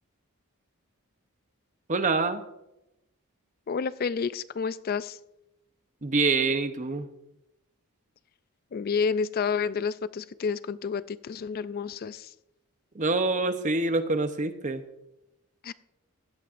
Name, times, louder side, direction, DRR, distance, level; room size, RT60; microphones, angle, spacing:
voice 1, 1.9-2.4 6.0-7.1 12.9-14.8, right 3 dB, 35° right, 9 dB, 0.8 m, -26 dB
voice 2, 3.7-5.2 8.7-12.3 15.6-15.7, left 5 dB, 40° left, 16 dB, 0.3 m, -30 dB
16.0 x 11.5 x 2.5 m, 0.91 s
head